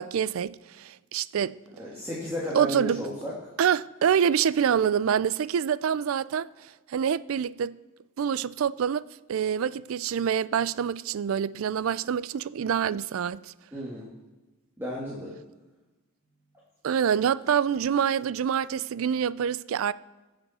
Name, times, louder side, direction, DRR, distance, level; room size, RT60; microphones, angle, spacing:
voice 1, 0.0-1.6 2.6-3.0 3.6-6.5 6.9-7.8 8.2-13.5 16.8-19.9, right 8 dB, 75° right, 0.4 m, -26 dB
voice 2, 1.8-3.5 13.7-14.1 14.8-15.3, equal, 10° right, 1.9 m, -33 dB
21.0 x 7.0 x 4.2 m
head